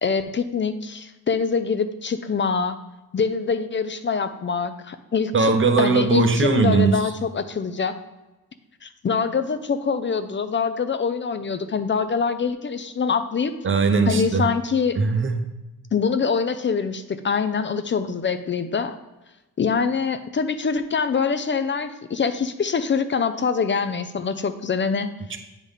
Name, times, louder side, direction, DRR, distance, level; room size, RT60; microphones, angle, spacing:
voice 1, 0.0-2.8 3.1-5.5 5.8-7.9 8.8-13.5 14.1-15.0 15.9-19.0 19.6-25.4, left 5 dB, 35° left, 10 dB, 0.4 m, -24 dB
voice 2, 5.3-7.1 13.6-14.5 15.0-15.4 25.3-25.4, right 4 dB, 35° right, 6 dB, 0.8 m, -19 dB
9.0 x 3.5 x 5.5 m, 1.1 s
wide cardioid pair, 150°, 37 cm